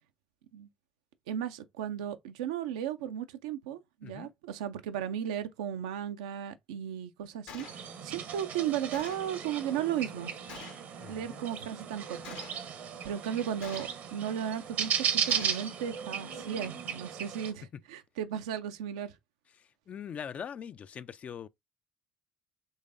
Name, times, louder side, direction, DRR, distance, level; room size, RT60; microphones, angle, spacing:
voice 1, 1.3-10.3 11.1-12.4 13.0-19.2, right 9 dB, 75° right, 0.4 m, -35 dB
Gunshot gunfire, 7.5-7.8 8.9-9.3 10.5-10.9 12.2-12.7 13.6-14.1 15.3-15.7, left 6 dB, 70° left, 1.0 m, -46 dB
sound 1, 7.6-17.5, right 8 dB, 60° right, 0.8 m, -36 dB
voice 2, 11.0-11.4 19.9-21.5, left 8 dB, 40° left, 0.3 m, -42 dB
5.5 x 3.2 x 2.5 m
figure-of-eight pair, 50°, 3 cm